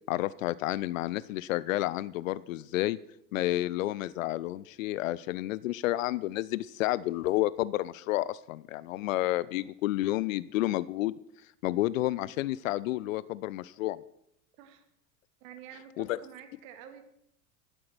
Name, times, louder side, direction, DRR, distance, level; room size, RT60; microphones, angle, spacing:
voice 1, 0.1-3.0 3.3-11.2 11.6-14.0 16.0-16.2, left 16 dB, 55° left, 20 dB, 0.6 m, -30 dB
voice 2, 15.4-17.0, right 9 dB, 55° right, 7 dB, 2.2 m, -49 dB
12.5 x 11.5 x 6.0 m, 0.72 s
figure-of-eight pair, 80°, 48 cm